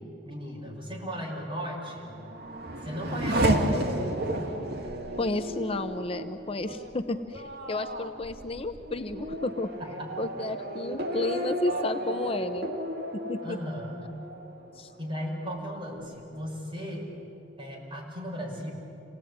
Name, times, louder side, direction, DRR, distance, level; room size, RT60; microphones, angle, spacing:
voice 1, 0.2-2.1 2.8-4.3 10.0-10.1 13.4-14.1 15.0-17.1 17.6-18.7, equal, 30° right, -2 dB, 5.9 m, -36 dB
Race car auto racing / Accelerating revving vroom, 1.9-15.1 15.5-16.2, right 1 dB, 60° right, 2.2 m, -32 dB
voice 2, 5.2-7.4 7.7-9.7 10.2-12.7 13.1-13.6 14.8-14.9, left 2 dB, 35° left, 8 dB, 0.7 m, -32 dB
27.5 x 18.0 x 9.5 m, 3.0 s
head